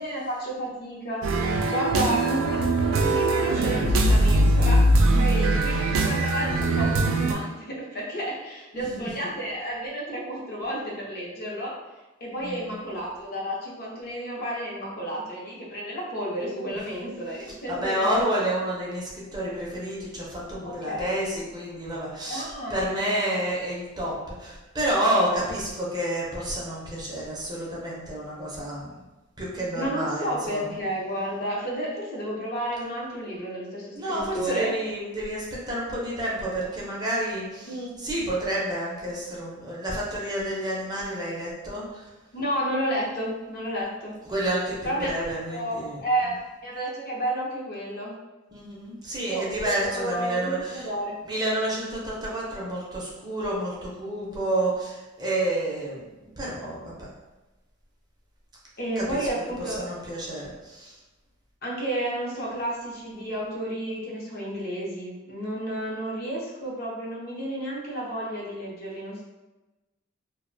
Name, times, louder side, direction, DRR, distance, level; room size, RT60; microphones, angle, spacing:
voice 1, 0.0-11.7 12.2-18.3 20.6-21.1 22.3-23.0 29.7-34.7 37.7-37.9 42.3-44.1 44.8-45.1 45.5-46.3 46.6-48.1 49.3-51.2 58.8-59.8 61.6-69.2, right 1 dB, 50° left, -4 dB, 0.6 m, -31 dB
sound 1, 1.2-7.3, right 1 dB, 75° right, 0.3 m, -21 dB
voice 2, 5.1-5.6 8.7-9.1 12.4-12.8 17.7-29.0 29.4-30.7 34.0-42.1 44.3-46.0 48.5-50.9 51.2-57.1 59.0-59.3 59.6-61.0, right 1 dB, 20° right, -5 dB, 0.5 m, -29 dB
2.4 x 2.0 x 2.6 m, 1.1 s
head